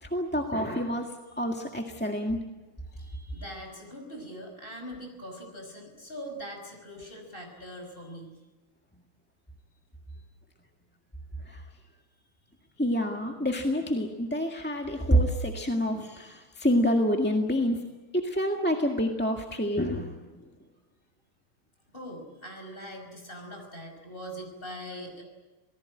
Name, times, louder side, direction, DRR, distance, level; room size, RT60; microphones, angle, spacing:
voice 1, 0.0-1.1 1.4-2.4 11.5-11.6 12.8-17.8 18.1-20.2, equal, 5° left, 2 dB, 1.5 m, -27 dB
voice 2, 2.9-8.3 21.9-25.2, equal, 25° left, 3 dB, 5.9 m, -42 dB
27.5 x 19.0 x 8.8 m, 1.2 s
omnidirectional pair, 2.2 m